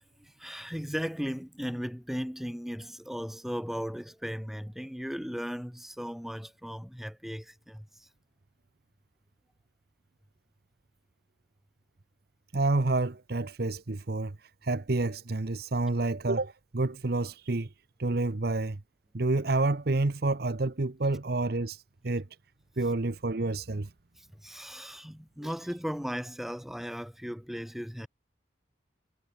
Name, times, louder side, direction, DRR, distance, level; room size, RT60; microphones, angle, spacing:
voice 1, 0.2-8.1 24.2-28.1, equal, ahead, 2.4 m, -37 dB
voice 2, 12.5-14.4 14.6-17.7 18.0-18.8 19.1-22.3 22.8-23.9, right 2 dB, 55° right, 0.9 m, -29 dB
head